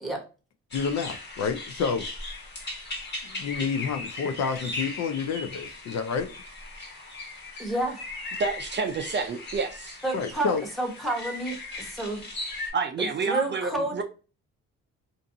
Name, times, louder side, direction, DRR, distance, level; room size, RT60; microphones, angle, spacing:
voice 1, 0.7-2.0 3.2-6.3 10.1-10.6, left 5 dB, 60° left, 0.5 m, -29 dB
sound 1, 0.7-12.7, left 2 dB, 35° left, 1.3 m, -38 dB
voice 2, 7.6-8.0 10.0-10.5 10.8-12.3 13.0-14.0, right 2 dB, ahead, 1.0 m, -30 dB
voice 3, 8.4-10.0 12.7-14.0, right 4 dB, 40° right, 0.4 m, -29 dB
2.5 x 2.5 x 2.6 m
cardioid pair, 90°, 30 cm